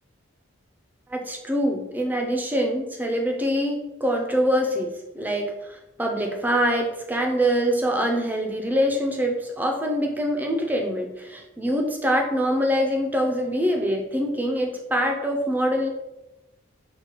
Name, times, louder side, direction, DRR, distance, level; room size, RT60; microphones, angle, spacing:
voice 1, 1.1-15.9, equal, 10° right, 2 dB, 0.3 m, -24 dB
4.5 x 2.1 x 2.9 m, 0.99 s
head